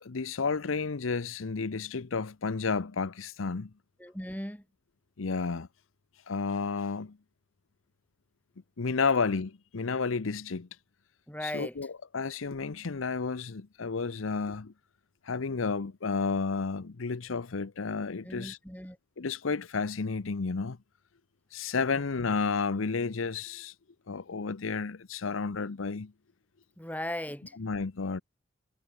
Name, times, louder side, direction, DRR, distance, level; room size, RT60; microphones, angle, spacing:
voice 1, 0.0-3.7 5.2-5.7 6.3-7.2 8.8-10.7 11.4-14.7 15.2-18.6 19.2-20.8 21.5-23.7 24.1-26.1 27.6-28.2, left 4 dB, 85° left, 0.7 m, -31 dB
voice 2, 4.0-4.6 11.3-11.8 18.2-19.0 21.9-22.0 26.8-27.6, left 1 dB, 10° left, 8.0 m, -38 dB
head